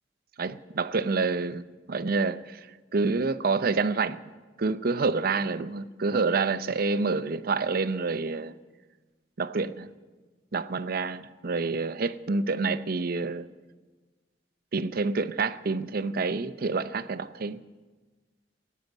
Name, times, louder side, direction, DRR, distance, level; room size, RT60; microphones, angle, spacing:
voice 1, 0.4-2.6 2.9-4.2 4.6-8.5 9.4-9.9 10.5-13.5 14.7-17.6, right 4 dB, 55° right, 0.6 m, -28 dB
15.5 x 9.4 x 9.2 m
head